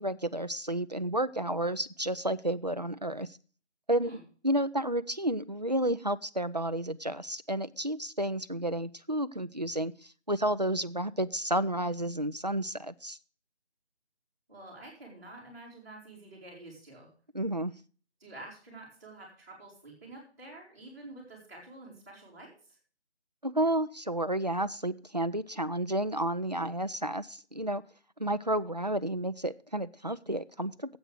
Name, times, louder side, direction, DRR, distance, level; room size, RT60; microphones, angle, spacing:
voice 1, 0.0-3.3 3.9-4.2 4.4-9.9 10.3-13.2 17.3-17.7 23.4-27.8 28.2-31.0, right 1 dB, 40° right, 11 dB, 0.4 m, -31 dB
voice 2, 14.5-17.1 18.2-22.5, right 2 dB, 15° right, -7 dB, 3.2 m, -48 dB
8.6 x 8.1 x 7.8 m, 0.41 s
figure-of-eight pair, 175°, 34 cm